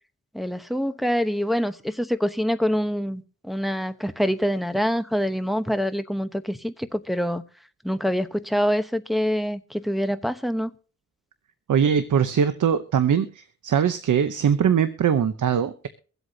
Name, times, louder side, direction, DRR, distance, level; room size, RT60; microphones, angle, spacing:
voice 1, 0.3-7.4 7.8-10.7, equal, ahead, 0.9 m, -25 dB
voice 2, 11.7-15.9, right 8 dB, 90° right, 0.8 m, -21 dB
23.5 x 8.1 x 2.7 m
cardioid pair, 70°, 30 cm